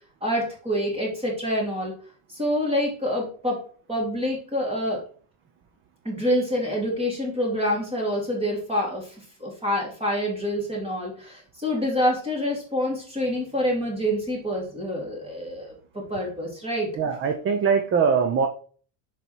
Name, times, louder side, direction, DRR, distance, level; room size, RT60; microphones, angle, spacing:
voice 1, 0.2-1.9 2.3-3.6 3.9-5.0 6.0-16.9, equal, 10° right, -2 dB, 2.5 m, -27 dB
voice 2, 17.0-18.5, right 6 dB, 30° right, 7 dB, 0.4 m, -22 dB
6.8 x 4.9 x 4.4 m, 0.43 s
cardioid pair, 175°, 50 cm